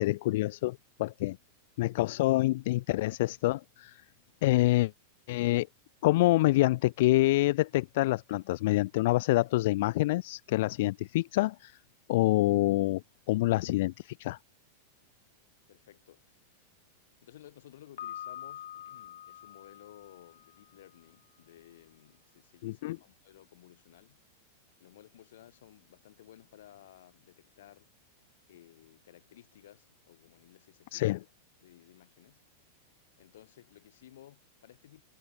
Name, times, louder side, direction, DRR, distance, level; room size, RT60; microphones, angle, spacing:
voice 1, 0.0-1.4 1.8-4.0 4.4-4.9 5.3-5.7 6.0-11.8 12.1-14.4 22.6-23.0 30.9-31.2, left 18 dB, 50° left, 0.4 m, -27 dB
voice 2, 15.7-16.7 17.2-24.2 24.8-27.9 28.5-31.3 31.6-32.4 33.2-35.0, left 12 dB, 70° left, 7.1 m, -56 dB
Piano, 18.0-20.9, left 11 dB, 85° left, 1.6 m, -45 dB
supercardioid pair, 175°, 0 cm